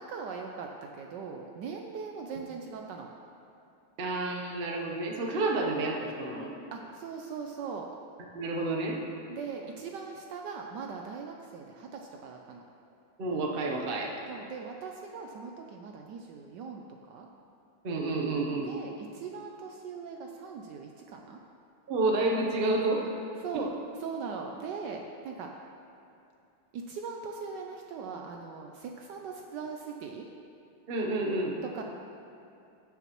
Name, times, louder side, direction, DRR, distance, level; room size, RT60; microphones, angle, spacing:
voice 1, 0.0-3.1 6.7-7.9 9.3-12.6 14.3-17.3 18.6-21.4 23.4-23.7 24.0-25.5 26.7-30.3 31.6-31.8, right 5 dB, 70° right, 2 dB, 1.1 m, -40 dB
voice 2, 4.0-6.5 8.3-9.0 13.2-14.2 17.8-18.7 21.9-23.1 23.5-23.6 30.9-31.6, right 2 dB, 45° right, 0 dB, 0.7 m, -29 dB
16.5 x 5.9 x 3.0 m, 2.6 s
omnidirectional pair, 2.2 m